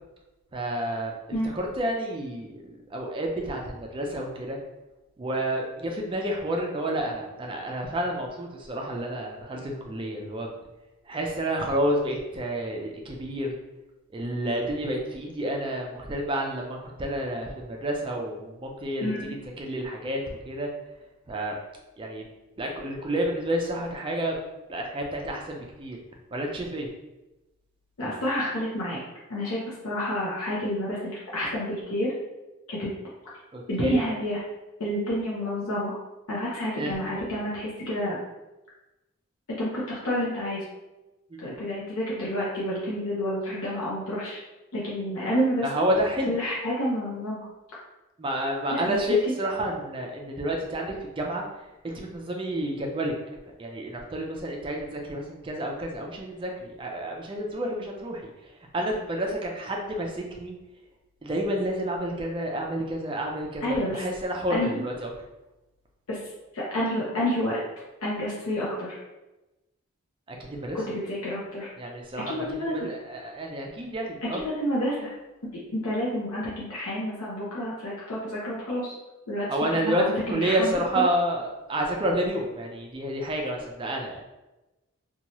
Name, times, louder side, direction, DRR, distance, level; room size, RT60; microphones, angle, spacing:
voice 1, 0.5-1.2 1.5-4.6 5.2-10.5 11.1-13.5 14.1-19.1 19.6-20.7 21.3-21.6 22.0-22.3 22.6-24.4 24.7-26.0 26.3-26.9 33.5-33.9 36.8-36.9 41.3-41.5 45.6-46.3 48.2-51.4 51.8-53.1 53.6-60.5 61.2-65.1 70.3-70.8 71.8-74.4 79.5-80.0 80.3-84.2, right 1 dB, 25° right, 1 dB, 0.3 m, -30 dB
voice 2, 19.0-19.3 28.0-29.0 29.3-32.1 32.7-32.9 33.7-34.4 34.8-36.0 36.3-38.2 39.5-40.6 41.4-44.4 44.7-45.8 46.3-47.4 48.7-49.3 63.6-64.1 64.5-64.8 66.1-66.2 66.5-67.6 68.0-69.0 70.7-71.7 72.3-72.9 74.4-75.1 75.7-78.9 79.3-79.5 79.7-81.0, equal, 85° left, -6 dB, 0.6 m, -29 dB
2.8 x 2.2 x 2.9 m, 1.0 s
head